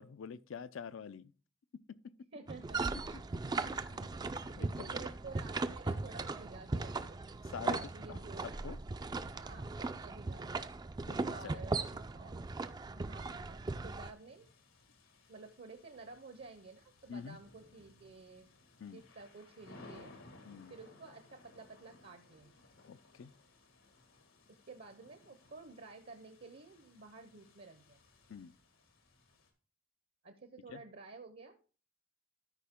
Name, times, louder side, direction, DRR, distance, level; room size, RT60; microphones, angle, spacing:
voice 1, 0.0-1.3 1.9-2.1 3.1-5.1 7.4-7.8 8.1-8.8 11.0-11.6 17.1-17.4 18.8-19.0 20.5-20.7 22.9-23.3 28.3-28.5 30.7-30.8, left 6 dB, 70° left, 0.4 m, -47 dB
voice 2, 2.3-3.6 3.9-7.2 7.7-8.6 9.3-10.6 11.2-12.4 12.9-14.5 15.3-18.5 18.9-20.2 20.7-22.6 24.7-28.0 30.2-31.6, right 3 dB, 55° right, 0.8 m, -52 dB
sound 1, 2.5-14.1, right 3 dB, 20° right, 0.3 m, -38 dB
sound 2, 13.5-29.5, left 2 dB, 85° left, 1.8 m, -61 dB
12.5 x 5.1 x 3.6 m
head